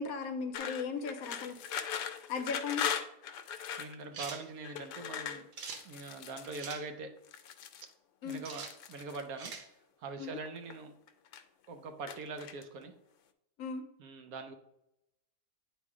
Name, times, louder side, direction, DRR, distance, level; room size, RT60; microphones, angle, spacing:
voice 1, 0.0-1.5 2.3-2.8 8.2-8.4 10.2-10.3 13.6-13.8, left 5 dB, 65° left, 7 dB, 1.0 m, -36 dB
sound 1, 0.5-4.0 4.6-6.7 7.2-7.9 8.3-9.2 10.1-10.8 11.1-11.7 12.1-12.8, left 8 dB, 85° left, 1.2 m, -39 dB
voice 2, 3.8-5.5 5.8-7.2 8.2-10.9 11.7-12.9 14.0-14.5, right 3 dB, 65° right, 7 dB, 1.0 m, -43 dB
sound 2, 4.1-4.4 5.5-5.8 6.6-6.8 8.4-8.7 9.4-9.7, right 5 dB, 85° right, 1.5 m, -43 dB
8.5 x 3.1 x 4.7 m, 0.83 s
omnidirectional pair, 1.7 m